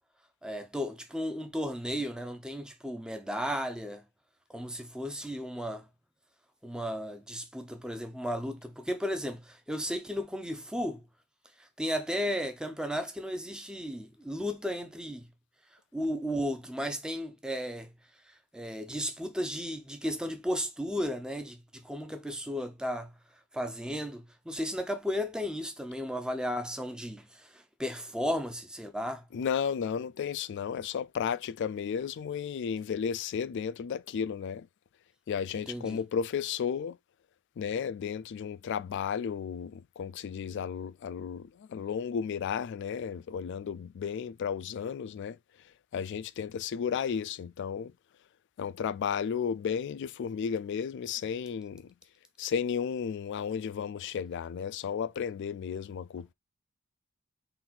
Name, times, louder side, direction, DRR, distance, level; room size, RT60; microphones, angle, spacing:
voice 1, 0.4-4.0 4.5-5.9 6.6-11.0 11.8-15.3 15.9-17.9 18.5-23.1 23.5-29.2 35.5-36.0, equal, 5° right, 0.6 m, -34 dB
voice 2, 29.3-34.7 35.3-37.0 37.6-45.4 45.9-47.9 48.6-51.9 52.4-56.3, left 7 dB, 55° left, 0.3 m, -33 dB
3.9 x 2.6 x 4.3 m
head